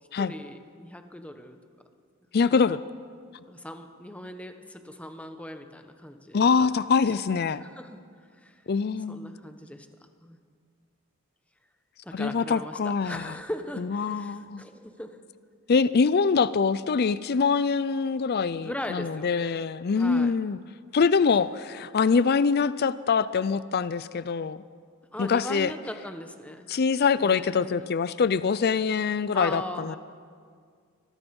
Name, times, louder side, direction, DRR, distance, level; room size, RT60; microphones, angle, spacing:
voice 1, 0.2-1.6 2.5-2.6 3.5-6.7 7.6-8.0 8.4-8.6 9.1-9.9 10.2-10.4 12.0-15.2 18.6-19.6 19.9-20.3 25.1-26.7 27.2-27.9 29.3-30.0, left 1 dB, 5° left, 7 dB, 1.1 m, -39 dB
voice 2, 2.3-2.8 6.3-7.6 8.7-9.3 12.1-13.2 13.9-14.6 15.7-20.6 20.9-24.6 25.2-25.7 26.7-30.0, left 5 dB, 50° left, 16 dB, 0.4 m, -24 dB
24.5 x 19.5 x 5.4 m, 2.1 s
head